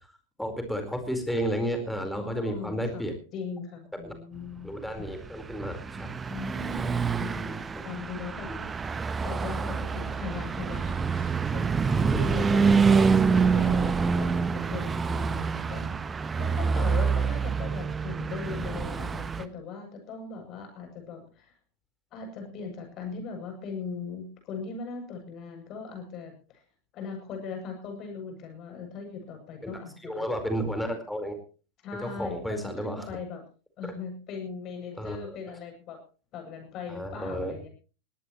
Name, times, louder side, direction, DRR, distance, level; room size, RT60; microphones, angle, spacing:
voice 1, 0.4-3.1 4.0-4.1 4.6-6.1 7.4-7.6 8.5-8.6 12.1-12.2 29.6-29.7 30.0-31.4 32.0-33.1 33.8-33.9 35.0-35.3 36.9-37.5, equal, ahead, 6 dB, 4.5 m, -32 dB
voice 2, 2.1-5.1 6.3-8.5 9.2-13.0 13.3-21.5 22.1-26.3 26.9-30.3 31.8-33.4 33.8-36.0 36.3-37.7, left 5 dB, 35° left, 4 dB, 7.8 m, -39 dB
Car passing by / Truck, 5.1-19.4, right 5 dB, 15° right, 1.0 m, -26 dB
20.5 x 18.0 x 3.1 m, 0.37 s
figure-of-eight pair, 90°, 0 cm